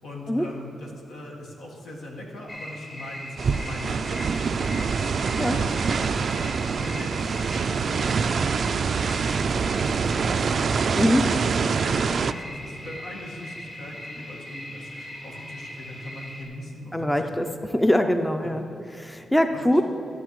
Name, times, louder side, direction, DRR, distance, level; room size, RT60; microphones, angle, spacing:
voice 1, 0.0-5.0 5.3-17.6 18.4-18.5 19.5-19.8, left 1 dB, 80° left, -1 dB, 1.6 m, -41 dB
sound 1, 2.5-16.5, left 1 dB, 45° left, 1.9 m, -39 dB
sound 2, 3.4-12.3, right 5 dB, 60° right, 0.3 m, -25 dB
voice 2, 11.0-11.3 16.9-18.7 18.9-19.8, equal, 10° left, 6 dB, 0.5 m, -23 dB
13.5 x 7.8 x 3.1 m, 2.7 s
cardioid pair, 65°, 0 cm